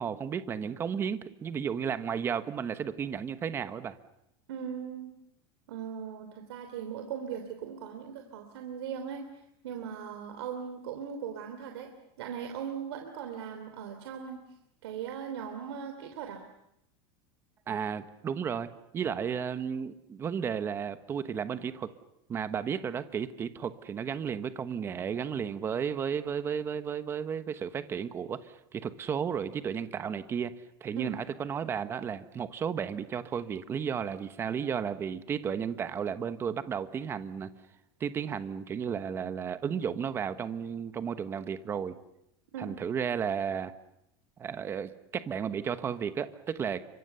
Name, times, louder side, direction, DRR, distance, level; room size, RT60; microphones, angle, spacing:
voice 1, 0.0-3.9 17.7-21.9 22.3-30.5 30.8-37.5 38.0-42.0 42.6-43.7 44.4-47.0, right 7 dB, 20° right, 12 dB, 1.1 m, -33 dB
voice 2, 4.5-5.1 5.7-9.2 9.6-14.4 14.8-16.4 30.9-31.2 42.5-42.8, right 7 dB, 90° right, 5 dB, 3.2 m, -39 dB
30.0 x 25.0 x 6.9 m, 0.80 s
supercardioid pair, 170°, 13 cm